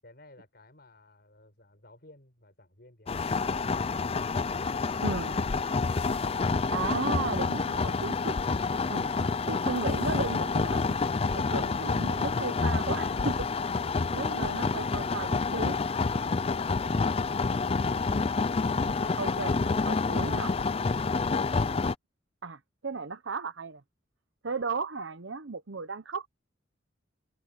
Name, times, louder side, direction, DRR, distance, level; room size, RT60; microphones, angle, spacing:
voice 1, 0.0-3.9, left 1 dB, 55° left, 5.7 m, -55 dB
sound 1, 3.1-21.9, left 4 dB, 30° left, 0.4 m, -28 dB
voice 2, 5.0-5.4 6.7-8.4 8.9-9.1 9.5-11.0 11.3-13.4 14.1-15.8 18.0-18.2 19.2-20.6 22.4-23.8 24.4-26.3, right 4 dB, 75° right, 0.9 m, -35 dB
head